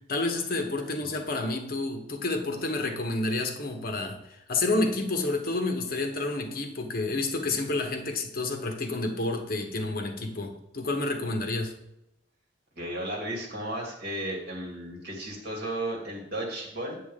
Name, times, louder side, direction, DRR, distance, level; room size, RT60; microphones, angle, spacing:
voice 1, 0.1-4.2 4.5-11.7, left 2 dB, 50° left, 4 dB, 1.0 m, -29 dB
voice 2, 12.8-17.0, right 1 dB, 60° right, -1 dB, 2.4 m, -34 dB
8.3 x 7.5 x 3.6 m, 0.85 s
head